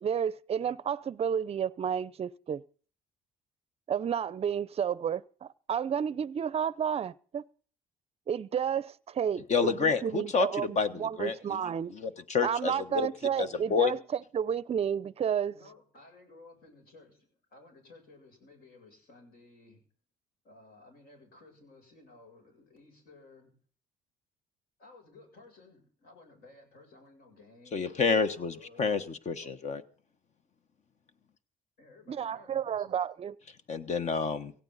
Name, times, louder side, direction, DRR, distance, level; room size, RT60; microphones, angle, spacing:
voice 1, 0.0-2.6 3.9-7.4 8.3-11.9 12.4-14.0 14.3-15.5 32.1-33.3, right 8 dB, 35° right, 0.6 m, -31 dB
voice 2, 9.5-11.6 11.9-13.1 13.4-13.9 27.7-29.8 33.7-34.5, left 5 dB, 45° left, 1.2 m, -29 dB
voice 3, 15.5-19.8 20.4-23.5 24.8-28.2 28.5-29.5 31.8-33.0, left 2 dB, 65° left, 7.5 m, -56 dB
17.5 x 16.0 x 4.1 m
cardioid pair, 110°, 17 cm